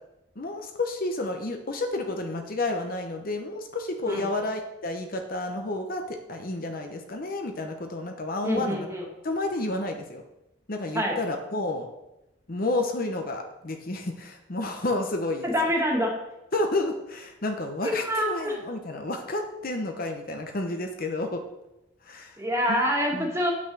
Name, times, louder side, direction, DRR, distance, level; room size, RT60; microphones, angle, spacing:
voice 1, 0.4-8.9 9.2-10.2 10.7-11.9 12.5-15.5 16.5-21.4 22.0-22.3 22.7-22.8 23.1-23.3, left 2 dB, 45° left, 4 dB, 0.9 m, -30 dB
voice 2, 8.4-9.1 10.9-11.2 15.4-16.1 17.8-18.6 22.4-23.5, equal, 15° right, 0 dB, 1.8 m, -26 dB
9.0 x 6.0 x 6.1 m, 0.92 s
head